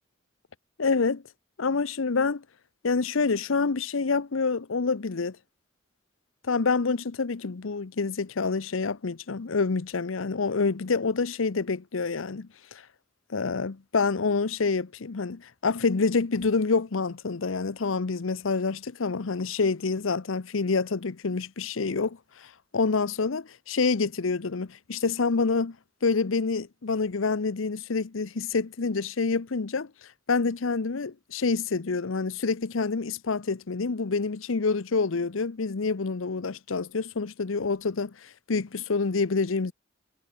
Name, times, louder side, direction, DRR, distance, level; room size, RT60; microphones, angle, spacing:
voice 1, 0.8-1.2 1.6-2.4 2.8-5.4 6.5-12.8 13.3-25.8 26.0-29.9 30.3-39.7, left 4 dB, 85° left, 0.8 m, -27 dB
head